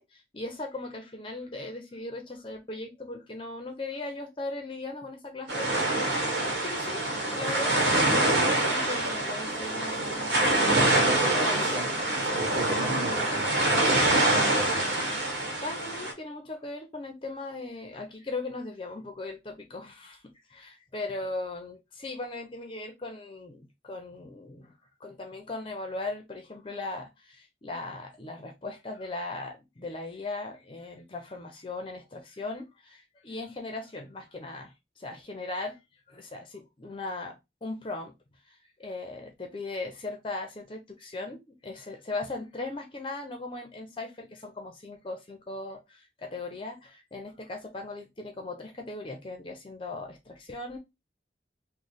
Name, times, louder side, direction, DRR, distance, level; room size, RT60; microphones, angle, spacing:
voice 1, 0.0-12.0 15.6-20.2 20.5-24.7 25.0-35.8 36.1-38.1 38.5-50.8, left 2 dB, 30° left, 0.5 m, -38 dB
sound 1, 5.5-16.1, right 2 dB, 75° right, 1.2 m, -25 dB
voice 2, 10.9-14.9, equal, 30° right, 1.5 m, -37 dB
3.1 x 2.1 x 4.0 m
head